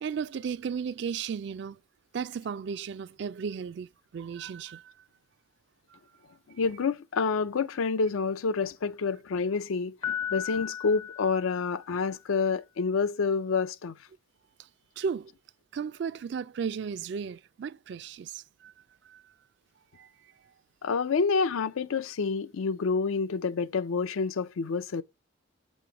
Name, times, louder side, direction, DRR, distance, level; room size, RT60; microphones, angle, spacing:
voice 1, 0.0-1.8 2.1-4.9 5.9-6.0 15.0-15.3 15.7-18.7 19.1-19.2 19.9-20.1, right 6 dB, 55° right, 0.3 m, -35 dB
voice 2, 6.6-14.0 20.8-25.0, left 5 dB, 80° left, 0.4 m, -28 dB
Piano, 10.0-12.1, left 9 dB, 20° left, 0.4 m, -36 dB
7.6 x 3.0 x 5.0 m
head